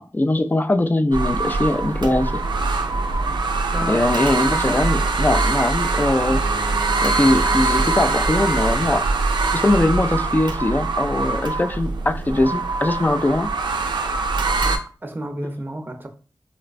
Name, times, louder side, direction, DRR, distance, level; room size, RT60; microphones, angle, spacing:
voice 1, 0.0-2.3 3.9-6.4 7.0-9.1 9.5-13.5, left 2 dB, 25° left, 0.3 m, -21 dB
sound 1, 1.1-14.8, right 3 dB, 85° right, 0.4 m, -23 dB
voice 2, 3.7-4.2 14.6-16.1, right 1 dB, 25° right, 0.5 m, -31 dB
Bowed string instrument, 6.1-9.3, left 2 dB, 60° left, 1.0 m, -37 dB
4.0 x 2.1 x 2.4 m
cardioid pair, 55°, 8 cm